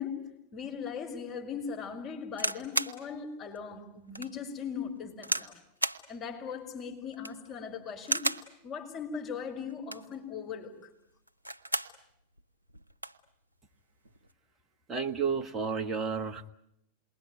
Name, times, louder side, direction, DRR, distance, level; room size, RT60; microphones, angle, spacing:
voice 1, 0.0-5.6 6.1-8.3 8.6-10.9, left 6 dB, 30° left, 5.3 m, -39 dB
sound 1, 2.3-3.0 3.6-3.7 4.1-4.3 5.2-5.5 5.8-6.0 7.1-7.5 8.0-8.5 9.7-10.2 11.3-12.0 12.4-12.5 12.7-13.2 14.0-14.3, right 1 dB, 85° right, 1.0 m, -33 dB
voice 2, 14.9-16.5, right 5 dB, 20° right, 1.5 m, -31 dB
28.0 x 22.0 x 9.2 m
figure-of-eight pair, 90°, 0 cm